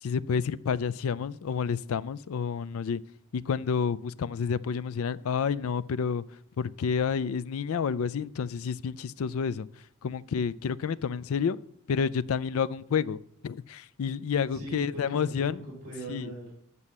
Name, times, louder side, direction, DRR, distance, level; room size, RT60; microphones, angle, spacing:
voice 1, 0.0-3.0 3.3-6.2 6.6-9.7 10.0-11.6 11.9-15.6 16.1-16.3, left 6 dB, 70° left, 0.4 m, -29 dB
voice 2, 14.5-16.6, right 2 dB, 40° right, 4.7 m, -40 dB
9.8 x 5.5 x 7.3 m
head